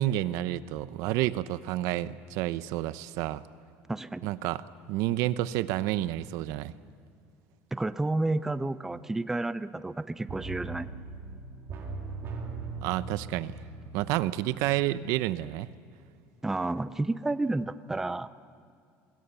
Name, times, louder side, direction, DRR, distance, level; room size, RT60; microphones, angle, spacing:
voice 1, 0.0-3.4 4.2-4.6 4.9-6.7 12.8-13.5 13.9-15.7, right 14 dB, 70° right, 15 dB, 0.8 m, -29 dB
voice 2, 3.9-4.3 7.7-10.9 16.4-18.3, right 2 dB, 5° right, 14 dB, 0.5 m, -31 dB
sound 1, 10.3-15.0 15.3-15.4, right 3 dB, 45° right, 4.0 m, -40 dB
26.0 x 21.5 x 7.0 m, 2.4 s
cardioid pair, 150°, 6 cm